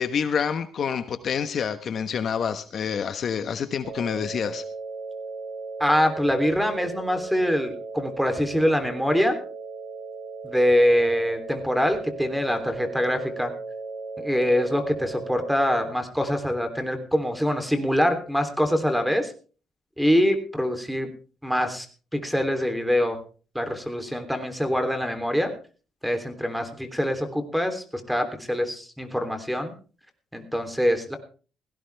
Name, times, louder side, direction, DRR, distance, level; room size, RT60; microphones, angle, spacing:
voice 1, 0.0-4.6, left 7 dB, 55° left, 10 dB, 1.2 m, -27 dB
sound 1, 3.8-15.8, right 3 dB, 60° right, 5.8 m, -36 dB
voice 2, 5.8-9.4 10.4-13.5 14.2-19.3 20.0-21.1 21.4-21.9 22.1-23.2 23.5-25.5 26.0-29.7 30.3-31.2, equal, ahead, 7 dB, 3.4 m, -24 dB
17.0 x 16.5 x 3.5 m, 0.39 s
cardioid pair, 90°, 0 cm